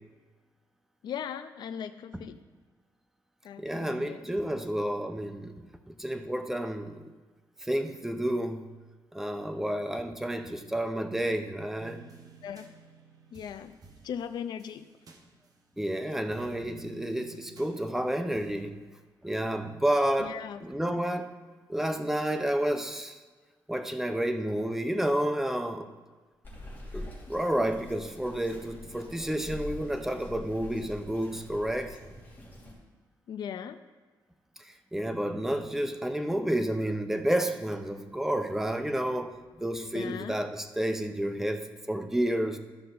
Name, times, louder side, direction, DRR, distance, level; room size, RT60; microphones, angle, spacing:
voice 1, 1.0-2.4 3.4-4.3 12.4-12.7 13.3-13.8 14.0-14.9 20.2-21.0 33.3-33.8 39.9-40.4, left 8 dB, 60° left, 9 dB, 0.4 m, -39 dB
voice 2, 3.6-5.6 5.9-7.1 7.6-8.7 9.1-12.0 15.8-18.8 19.2-21.3 21.7-23.2 23.7-25.9 26.9-32.0 34.6-42.6, right 1 dB, 5° right, 7 dB, 0.6 m, -30 dB
sound 1, 11.8-16.0 16.3-18.6, right 4 dB, 45° right, 1.0 m, -54 dB
Bird vocalization bird call bird song, 26.4-32.7, left 1 dB, 25° left, 2.9 m, -44 dB
13.0 x 5.5 x 3.9 m, 1.3 s
cardioid pair, 135°, 8 cm